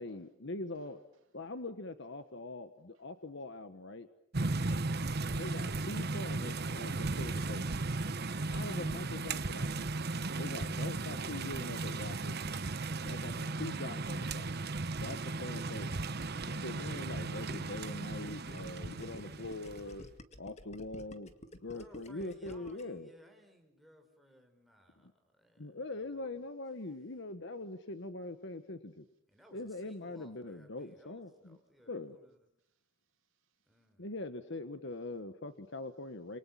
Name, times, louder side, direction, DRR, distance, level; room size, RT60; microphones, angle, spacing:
voice 1, 0.0-1.0 1.3-4.1 5.3-7.8 8.5-9.9 10.4-12.5 13.0-14.5 15.0-16.0 16.5-20.0 20.4-21.3 21.6-23.1 25.6-29.1 29.5-31.6 31.9-32.2 34.0-36.4, left 2 dB, 65° left, 10 dB, 1.4 m, -43 dB
voice 2, 0.7-1.2 32.6-33.9, right 5 dB, 90° right, 2 dB, 2.7 m, -77 dB
sound 1, 4.3-19.9, right 3 dB, 55° right, 1.1 m, -36 dB
Gurgling, 15.9-23.0, left 1 dB, 35° left, 2.1 m, -52 dB
voice 3, 21.6-26.2 29.3-32.4 33.7-34.1, equal, ahead, 3 dB, 5.4 m, -61 dB
28.5 x 28.0 x 7.5 m, 0.78 s
head